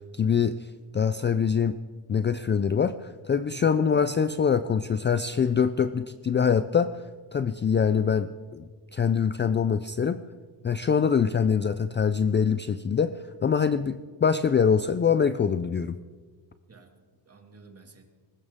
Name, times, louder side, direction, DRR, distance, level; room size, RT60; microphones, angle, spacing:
voice 1, 0.1-0.7 0.9-1.8 2.1-7.0 7.3-8.6 8.9-10.2 10.6-16.0, left 6 dB, 25° left, 12 dB, 0.4 m, -24 dB
voice 2, 3.3-3.6 16.7-18.1, right 4 dB, 30° right, 4 dB, 2.2 m, -52 dB
20.5 x 19.0 x 3.6 m, 1.5 s
cardioid pair, 105°, 47 cm